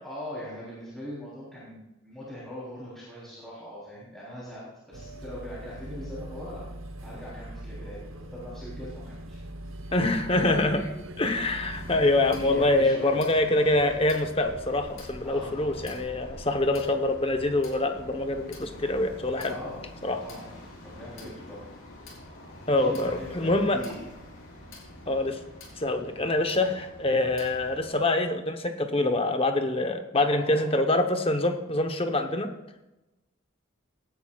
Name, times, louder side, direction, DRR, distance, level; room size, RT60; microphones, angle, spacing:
voice 1, 0.0-6.6 7.0-9.4 10.3-10.6 12.4-13.2 15.2-15.9 19.4-19.8 20.2-21.6 22.8-24.0 30.2-30.7, left 1 dB, ahead, -9 dB, 3.5 m, -41 dB
sound 1, 4.9-12.9, right 1 dB, 80° right, 1.0 m, -41 dB
voice 2, 9.9-10.8 11.2-19.5 20.0-20.2 22.7-23.8 25.1-25.4 25.8-32.5, left 2 dB, 25° left, 6 dB, 1.0 m, -25 dB
sound 2, 11.7-27.9, left 1 dB, 80° left, 4.8 m, -45 dB
18.0 x 10.5 x 2.4 m, 0.98 s
head